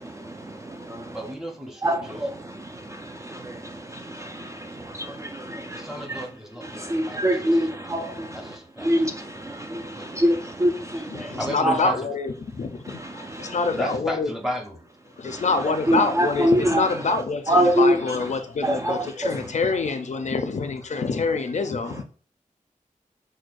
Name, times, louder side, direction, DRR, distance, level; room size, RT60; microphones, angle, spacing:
voice 1, 0.1-1.2 1.8-2.0 2.4-6.2 6.6-11.8 12.9-13.6 15.2-15.5 15.9-16.9 17.5-18.2 18.6-19.5, equal, 20° right, 0.3 m, -25 dB
voice 2, 1.1-2.2 5.7-9.2 9.9-10.3 11.4-12.0 13.7-14.8, equal, 5° right, 0.9 m, -34 dB
voice 3, 11.1-14.3 15.2-22.0, left 4 dB, 60° left, 0.4 m, -26 dB
6.1 x 2.2 x 2.5 m
wide cardioid pair, 100°, 14 cm